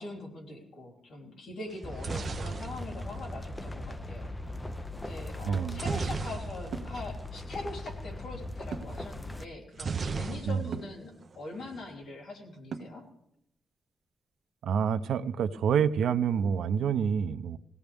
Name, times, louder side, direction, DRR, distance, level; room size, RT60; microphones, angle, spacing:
voice 1, 0.0-4.3 4.9-13.1, left 2 dB, 55° left, -2 dB, 3.5 m, -42 dB
sound 1, 1.7-3.8 5.7-6.9 7.2-7.3 7.6-7.8 9.7-10.9 11.2-11.8, right 5 dB, 35° right, 0.7 m, -35 dB
sound 2, 1.8-9.4, left 1 dB, 10° left, 0.6 m, -39 dB
voice 2, 5.4-5.8 10.4-10.7 14.6-17.6, right 7 dB, 90° right, 12 dB, 0.6 m, -27 dB
sound 3, 6.7-7.0 8.7-9.1 10.7-11.0 12.7-13.1, right 5 dB, 60° right, 1.3 m, -38 dB
20.5 x 17.0 x 3.5 m, 0.79 s
wide cardioid pair, 175°, 0 cm